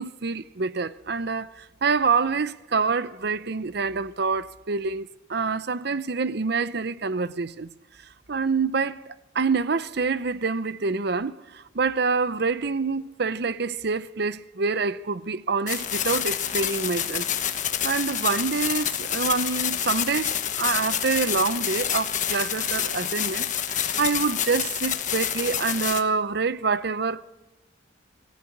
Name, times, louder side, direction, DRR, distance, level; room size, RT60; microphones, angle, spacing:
voice 1, 0.0-7.7 8.3-9.0 9.3-11.3 11.7-17.3 17.8-27.2, right 4 dB, 55° right, 0.7 m, -26 dB
sound 1, 15.7-26.0, left 9 dB, 40° left, 1.3 m, -28 dB
24.0 x 15.5 x 8.6 m
head